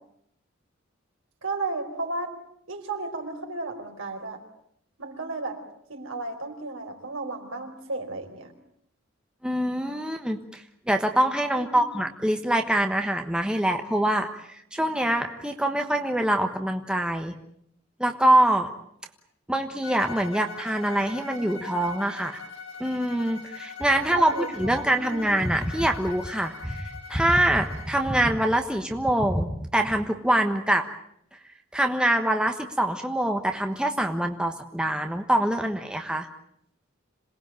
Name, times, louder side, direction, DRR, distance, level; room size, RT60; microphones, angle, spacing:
voice 1, 1.4-2.3 2.7-4.4 5.0-5.6 5.9-8.5 11.5-11.9 24.1-25.2, right 3 dB, 70° right, 3 dB, 4.5 m, -33 dB
voice 2, 9.4-10.6 10.9-17.3 18.0-18.7 19.5-22.4 22.8-30.9 31.7-36.3, right 1 dB, 5° right, 4 dB, 1.2 m, -24 dB
Bowed string instrument, 19.8-28.1, left 4 dB, 85° left, 5.2 m, -41 dB
27.0 x 19.0 x 9.1 m, 0.73 s
head